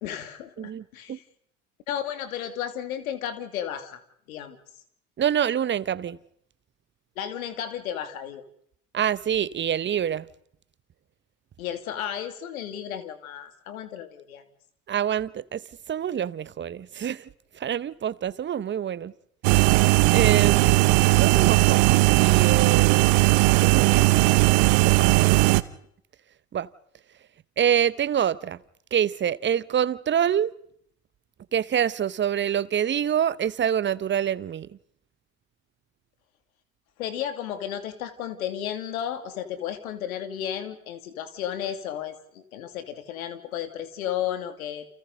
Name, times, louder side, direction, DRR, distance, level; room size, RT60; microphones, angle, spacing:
voice 1, 0.0-1.2 1.9-4.0 4.3-4.6 7.2-8.4 11.6-14.4 37.0-44.9, left 10 dB, 70° left, 2.7 m, -33 dB
voice 2, 0.6-1.2 5.2-6.2 8.9-10.3 14.9-15.6 15.9-17.3 17.5-19.1 20.1-23.0 23.6-24.2 24.8-25.4 26.5-26.7 27.6-28.6 28.9-30.5 31.5-34.7, right 9 dB, 25° right, 1.0 m, -26 dB
sound 1, 19.4-25.6, right 22 dB, 55° right, 1.2 m, -18 dB
29.5 x 28.5 x 4.0 m
hypercardioid pair, 75°, 43 cm